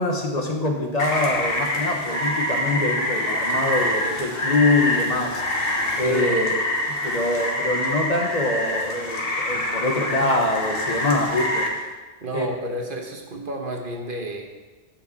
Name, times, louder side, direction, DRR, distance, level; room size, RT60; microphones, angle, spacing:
voice 1, 0.0-5.6 6.0-6.6 7.0-11.8 12.3-12.5, left 2 dB, 40° left, 1 dB, 1.2 m, -24 dB
Rain, 1.0-11.7, left 1 dB, 60° left, 1.6 m, -26 dB
voice 2, 5.9-6.5 12.2-14.6, right 2 dB, 50° right, 2 dB, 1.3 m, -30 dB
14.5 x 6.0 x 4.1 m, 1.2 s
omnidirectional pair, 1.1 m